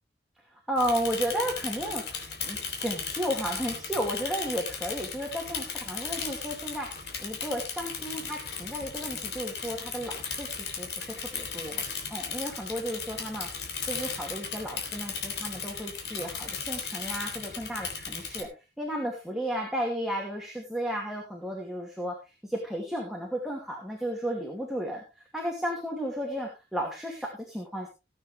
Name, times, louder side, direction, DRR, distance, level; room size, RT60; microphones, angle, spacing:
voice 1, 0.5-11.8 12.1-18.5 18.8-22.1 22.4-25.0 25.3-27.9, equal, ahead, -1 dB, 2.5 m, -33 dB
Bicycle / Mechanisms, 0.8-18.4, left 6 dB, 75° left, 3.4 m, -36 dB
18.0 x 9.0 x 3.4 m, 0.28 s
head